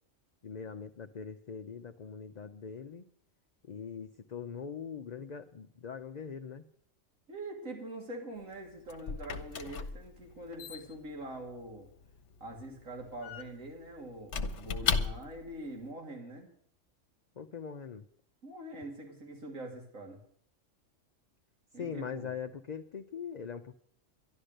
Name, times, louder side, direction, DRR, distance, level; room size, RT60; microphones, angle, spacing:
voice 1, 0.4-3.1 3.6-6.6 17.4-18.0 21.8-23.8, left 6 dB, 45° left, 7 dB, 0.6 m, -42 dB
voice 2, 7.3-11.9 12.4-16.5 18.4-20.2 21.7-22.3, right 1 dB, 85° right, 1 dB, 3.1 m, -44 dB
Squeak / Wood, 8.4-15.5, left 5 dB, 65° left, 1.2 m, -37 dB
12.0 x 11.5 x 6.5 m, 0.63 s
omnidirectional pair, 1.3 m